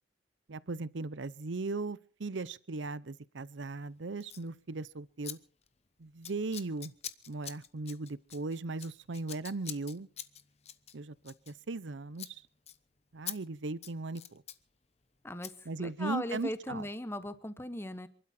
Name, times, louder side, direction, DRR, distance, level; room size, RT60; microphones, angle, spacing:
voice 1, 0.5-5.4 6.0-6.9 7.3-10.1 10.9-12.4 13.1-14.4 15.7-16.8, right 3 dB, 80° right, 0.7 m, -38 dB
Scissors, 4.2-4.5 5.2-5.4 5.6-5.9 6.2-11.9 12.1-12.3 12.7-12.8 13.3-13.4 13.7-14.6 15.4-15.5, left 10 dB, 35° left, 0.9 m, -45 dB
voice 2, 15.2-18.1, left 1 dB, 15° left, 1.0 m, -38 dB
27.5 x 12.0 x 4.3 m
head